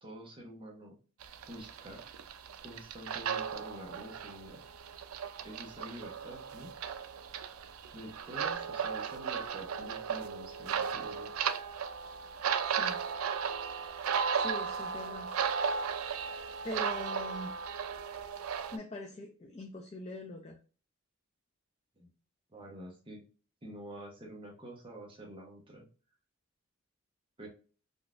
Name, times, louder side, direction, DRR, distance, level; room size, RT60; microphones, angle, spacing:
voice 1, 0.0-1.0 1.5-2.1 2.6-4.6 5.4-6.7 7.9-11.3 22.0-22.1 22.5-23.2 23.6-25.9 27.4-27.5, right 1 dB, 25° right, -1 dB, 0.8 m, -47 dB
sound 1, 1.2-18.8, right 6 dB, 85° right, 0.4 m, -36 dB
voice 2, 12.7-13.0 14.3-15.3 16.6-17.5 18.7-20.6, left 1 dB, 30° left, 3 dB, 0.4 m, -42 dB
3.8 x 2.3 x 2.4 m, 0.37 s
head